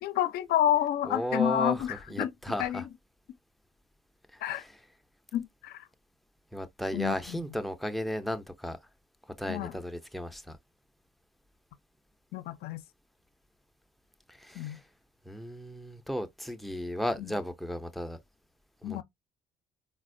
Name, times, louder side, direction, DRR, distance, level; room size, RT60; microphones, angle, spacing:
voice 1, 0.0-2.3 2.6-2.8 4.4-4.6 5.3-5.8 6.9-7.4 9.5-9.7 12.3-12.8 14.6-14.8 17.2-17.3 18.8-19.0, left 12 dB, 70° left, 0.5 m, -29 dB
voice 2, 1.1-2.9 4.4-4.7 6.5-8.8 9.4-10.6 14.3-14.8 15.3-18.2 18.8-19.0, equal, ahead, 0.5 m, -34 dB
4.0 x 2.1 x 2.5 m
cardioid pair, 110°, 17 cm